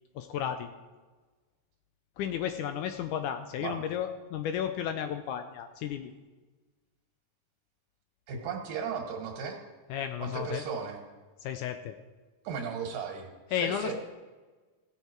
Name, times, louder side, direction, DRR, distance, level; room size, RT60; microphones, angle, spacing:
voice 1, 0.2-0.7 2.2-6.1 9.9-10.6 11.4-11.9 13.5-13.9, left 9 dB, 85° left, 8 dB, 1.8 m, -33 dB
voice 2, 8.3-9.6 10.2-11.0 12.4-13.9, right 6 dB, 75° right, 2 dB, 3.3 m, -36 dB
17.0 x 7.2 x 4.6 m, 1.3 s
omnidirectional pair, 4.0 m